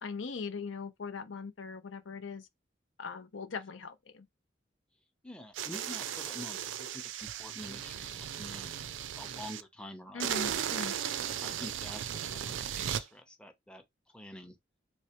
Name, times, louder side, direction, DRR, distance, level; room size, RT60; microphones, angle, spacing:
voice 1, 0.0-2.5 3.0-4.3 10.1-10.9, left 5 dB, 90° left, 0.7 m, -40 dB
voice 2, 5.2-8.7 9.2-10.4 10.8-13.8 14.1-14.6, left 1 dB, 5° left, 0.6 m, -47 dB
sound 1, 5.5-9.6 10.2-13.0, right 9 dB, 80° right, 0.4 m, -36 dB
3.2 x 3.0 x 2.9 m
head